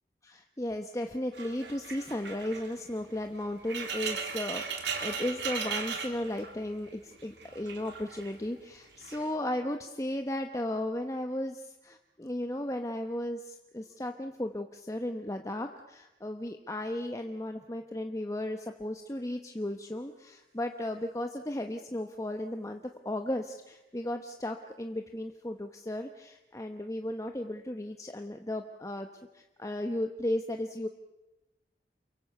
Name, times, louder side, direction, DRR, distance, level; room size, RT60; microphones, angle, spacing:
voice 1, 0.2-29.1 29.3-30.9, left 1 dB, 20° left, 5 dB, 1.0 m, -35 dB
sound 1, 1.3-6.9 7.2-8.4 9.0-9.3, right 5 dB, 85° right, 3.4 m, -37 dB
29.0 x 23.0 x 7.0 m, 1.0 s
head